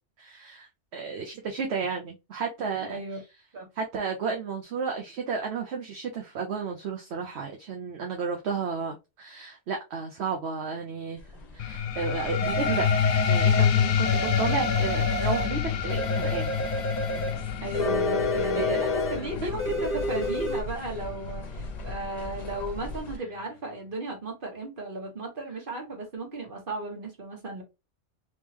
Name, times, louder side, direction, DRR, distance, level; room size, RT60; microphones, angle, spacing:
voice 1, 0.2-3.2 3.8-11.2 11.5-12.9 13.3-16.6 18.5-19.0 19.4-19.5 19.8-19.9, right 5 dB, 70° right, 1.0 m, -32 dB
voice 2, 2.9-3.2 3.5-3.6 17.6-27.6, right 2 dB, 50° right, 1.6 m, -35 dB
sound 1, 11.2-23.2, left 4 dB, 40° left, 0.9 m, -35 dB
sound 2, 11.6-22.6, left 8 dB, 75° left, 0.9 m, -28 dB
sound 3, 12.4-13.7 14.0-15.6 15.9-17.4 17.7-19.3 19.6-20.6, right 2 dB, 10° left, 1.0 m, -31 dB
3.6 x 3.1 x 2.9 m
omnidirectional pair, 1.2 m